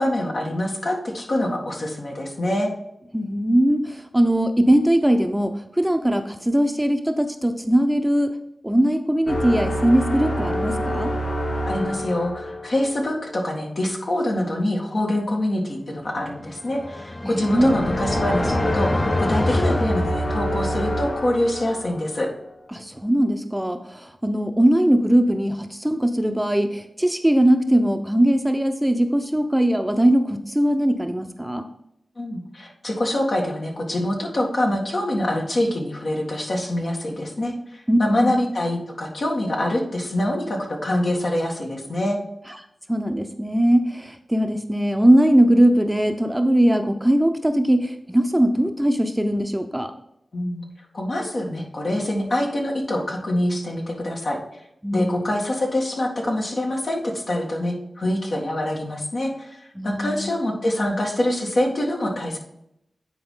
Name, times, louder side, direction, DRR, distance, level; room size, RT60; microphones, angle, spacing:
voice 1, 0.0-2.7 11.7-22.3 32.2-42.2 50.3-50.6 50.9-54.4 54.9-62.4, left 1 dB, 65° left, -1 dB, 1.9 m, -25 dB
voice 2, 3.1-8.3 8.6-11.1 17.2-17.7 22.7-31.6 37.9-38.4 42.9-49.9 54.8-55.2 59.8-60.3, right 1 dB, 10° right, 6 dB, 0.7 m, -20 dB
sound 1, 9.2-13.0 17.5-22.3, equal, 85° left, 1.6 m, -27 dB
sound 2, 16.4-20.8, left 1 dB, 25° left, 0.5 m, -26 dB
9.5 x 4.4 x 3.8 m, 0.80 s
cardioid pair, 45°, 0 cm